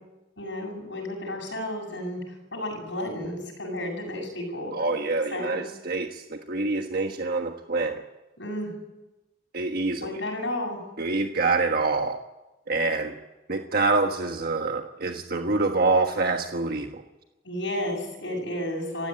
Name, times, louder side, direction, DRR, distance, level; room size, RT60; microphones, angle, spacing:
voice 1, 0.4-2.2 2.5-4.7 5.3-5.6 8.4-8.7 10.0-10.8 17.4-19.1, left 1 dB, 70° left, -5 dB, 7.3 m, -32 dB
voice 2, 4.7-8.0 9.5-10.2 11.0-12.2 12.7-13.1 13.5-17.0, right 3 dB, 55° right, 4 dB, 1.4 m, -26 dB
27.5 x 15.5 x 9.0 m, 1.0 s
head